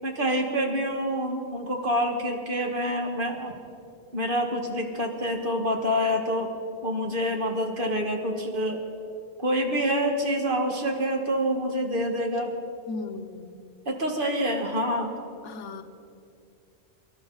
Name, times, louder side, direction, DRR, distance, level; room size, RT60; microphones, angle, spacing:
voice 1, 0.0-3.5 4.1-6.5 6.8-8.8 9.4-12.5 13.9-15.2, equal, 45° right, 2 dB, 1.7 m, -27 dB
voice 2, 12.9-13.6 15.4-15.8, left 4 dB, 85° left, 10 dB, 1.2 m, -37 dB
23.5 x 12.0 x 3.9 m, 2.5 s
omnidirectional pair, 1.2 m